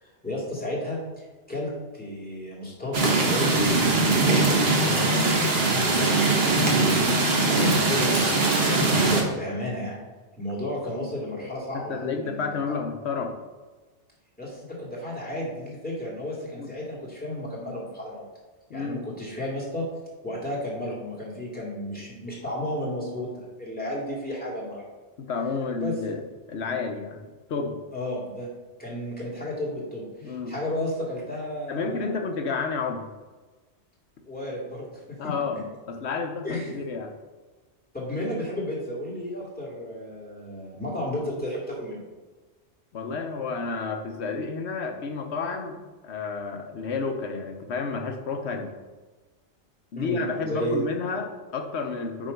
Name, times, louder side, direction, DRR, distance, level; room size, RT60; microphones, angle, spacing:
voice 1, 0.0-5.2 5.7-6.6 7.2-10.0 10.4-12.5 14.4-18.3 18.7-19.9 20.2-24.9 25.8-26.0 27.9-28.5 28.8-32.3 34.2-35.2 36.4-36.8 37.9-42.0 49.9-50.9, left 1 dB, 10° left, -6 dB, 2.2 m, -33 dB
sound 1, 2.9-9.2, right 3 dB, 60° right, 1.3 m, -21 dB
voice 2, 7.0-7.3 11.4-13.3 16.6-16.7 18.7-19.0 25.3-26.2 26.5-27.8 30.2-30.5 31.7-33.0 35.2-35.6 35.9-37.1 42.9-45.8 46.0-48.7 49.9-52.3, left 4 dB, 70° left, 4 dB, 1.1 m, -31 dB
8.8 x 3.3 x 5.2 m, 1.3 s
omnidirectional pair, 1.2 m